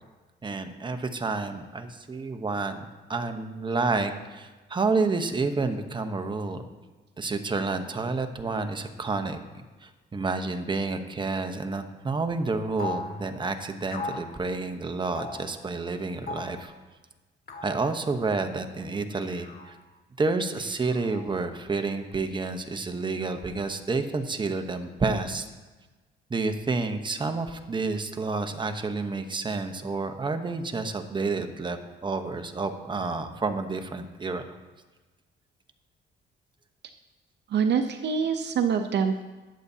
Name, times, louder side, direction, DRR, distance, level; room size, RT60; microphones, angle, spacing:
voice 1, 0.4-2.8 3.1-6.7 7.2-16.7 17.6-19.7 20.2-25.5 26.3-34.6, right 3 dB, 25° right, 7 dB, 1.0 m, -29 dB
sound 1, 12.8-13.1 13.9-14.3 15.1-15.5 16.3-16.6 17.5-17.8 19.2-19.7 20.6-21.3, left 3 dB, 50° left, 2.0 m, -37 dB
voice 2, 37.5-39.2, right 6 dB, 60° right, 7 dB, 0.7 m, -25 dB
19.0 x 8.2 x 2.8 m, 1.2 s
cardioid pair, 90°, 20 cm